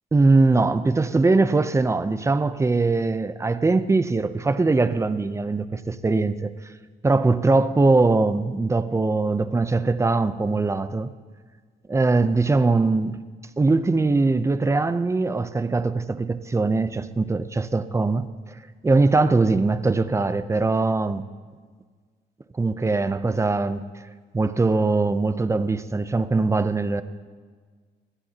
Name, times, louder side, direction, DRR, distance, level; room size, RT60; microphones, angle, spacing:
voice 1, 0.1-6.5 7.0-11.1 11.9-13.2 13.6-18.3 18.8-21.3 22.5-23.8 24.3-27.0, right 3 dB, 15° right, 0.6 m, -21 dB
22.0 x 15.5 x 2.9 m
cardioid pair, 130°, 18 cm